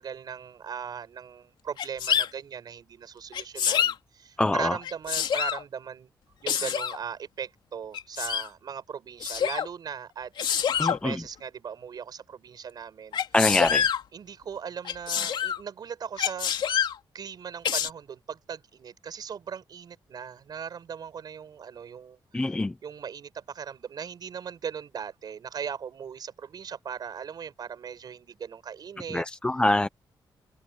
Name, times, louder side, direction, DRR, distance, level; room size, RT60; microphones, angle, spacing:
voice 1, 0.0-6.1 6.4-10.3 10.8-13.2 14.1-16.5 17.1-22.2 22.5-22.6 22.8-29.2, right 7 dB, 55° right, 6.6 m, -38 dB
Sneeze, 1.8-2.3 3.3-4.0 4.8-5.6 6.5-7.0 7.9-8.5 9.2-9.7 10.4-11.0 13.1-14.0 14.9-15.6 16.2-17.0 17.7-17.9, left 8 dB, 70° left, 3.4 m, -26 dB
voice 2, 4.4-4.8 10.8-11.2 13.3-13.9 22.3-22.7 29.1-29.9, left 2 dB, 10° left, 0.6 m, -24 dB
wide cardioid pair, 150°, 8 cm